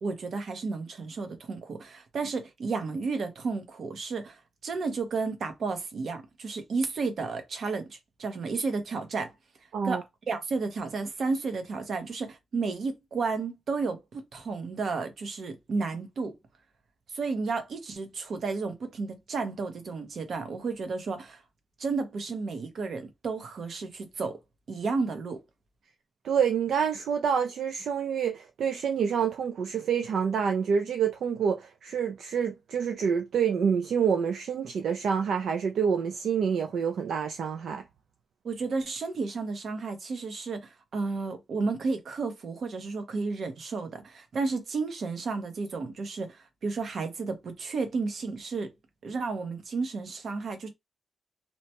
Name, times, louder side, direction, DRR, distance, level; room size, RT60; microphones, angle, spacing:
voice 1, 0.0-9.3 9.8-16.3 17.1-21.4 21.8-24.4 24.7-25.4 38.4-48.7 49.0-50.7, right 4 dB, 60° right, 0.8 m, -32 dB
voice 2, 26.2-37.8, right 7 dB, 80° right, 0.4 m, -27 dB
2.8 x 2.2 x 2.8 m
cardioid pair, 100°, 0 cm